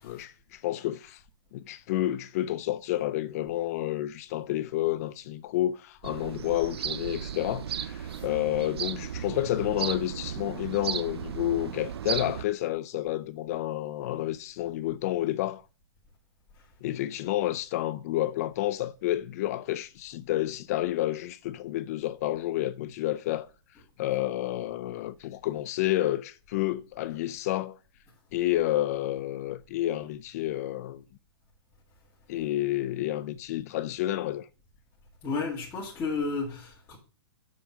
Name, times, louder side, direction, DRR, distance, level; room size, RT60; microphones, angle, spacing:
voice 1, 0.0-1.2 1.5-15.6 16.8-23.5 24.0-27.8 28.3-31.0 32.3-34.5, left 14 dB, 40° left, 0.4 m, -30 dB
sound 1, 6.0-12.4, right 8 dB, 80° right, 0.6 m, -35 dB
voice 2, 35.2-37.0, left 4 dB, 15° left, 2.3 m, -33 dB
7.4 x 5.5 x 6.0 m
hypercardioid pair, 155°, 13 cm